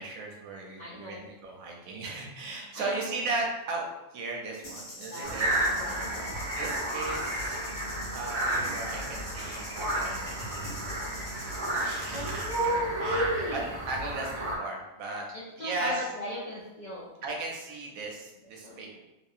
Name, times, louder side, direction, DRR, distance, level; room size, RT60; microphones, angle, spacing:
voice 1, 0.0-5.7 6.5-7.6 8.1-10.6 11.2-11.5 11.8-12.5 13.0-13.6 13.9-15.2 15.6-16.1 17.2-19.0, right 3 dB, 80° right, 0 dB, 1.0 m, -36 dB
voice 2, 0.8-1.3 2.7-3.1 5.0-6.4 11.4-11.7 12.1-13.7 15.6-17.1 18.6-19.0, right 1 dB, 65° left, -7 dB, 0.4 m, -34 dB
sound 1, 4.6-12.8, left 1 dB, 50° left, 1.0 m, -44 dB
sound 2, 5.2-14.6, right 1 dB, 55° right, 0.6 m, -32 dB
2.7 x 2.6 x 2.3 m, 0.99 s
omnidirectional pair, 1.4 m